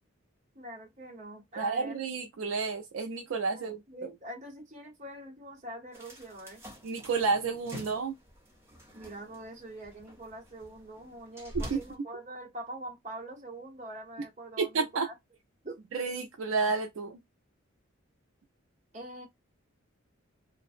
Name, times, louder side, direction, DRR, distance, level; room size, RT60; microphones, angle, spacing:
voice 1, 0.5-2.0 3.5-6.6 8.9-15.1 15.6-15.8 18.9-19.3, right 1 dB, 35° right, 0.9 m, -44 dB
voice 2, 1.6-3.8 6.8-8.1 11.7-11.8 14.6-15.1 15.9-17.2, right 4 dB, 70° right, 0.4 m, -30 dB
sound 1, 5.9-12.0, equal, 10° right, 0.5 m, -46 dB
2.5 x 2.0 x 2.4 m
head